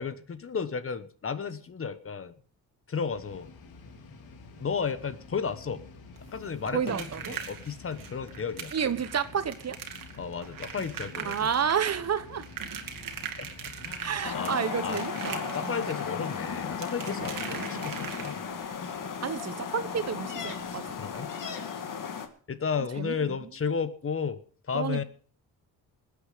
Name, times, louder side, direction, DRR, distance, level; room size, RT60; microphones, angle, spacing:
voice 1, 0.0-2.3 2.9-3.5 4.6-5.8 6.3-8.7 10.2-11.4 13.4-15.0 15.3-18.4 20.6-21.3 22.5-24.4 24.7-25.0, left 6 dB, 35° left, 1.1 m, -33 dB
sound 1, 3.1-14.3, left 3 dB, 80° left, 2.7 m, -49 dB
sound 2, 6.2-18.7 20.1-20.2 20.5-20.6 21.1-21.2, right 7 dB, 60° right, 2.3 m, -41 dB
voice 2, 6.7-7.3 8.7-9.8 11.2-12.5 14.0-15.8 19.2-21.0 23.0-23.4 24.7-25.0, right 7 dB, 45° right, 1.2 m, -30 dB
sound 3, 14.2-22.3, left 6 dB, 60° left, 2.1 m, -35 dB
20.5 x 8.6 x 5.1 m
cardioid pair, 100°, 36 cm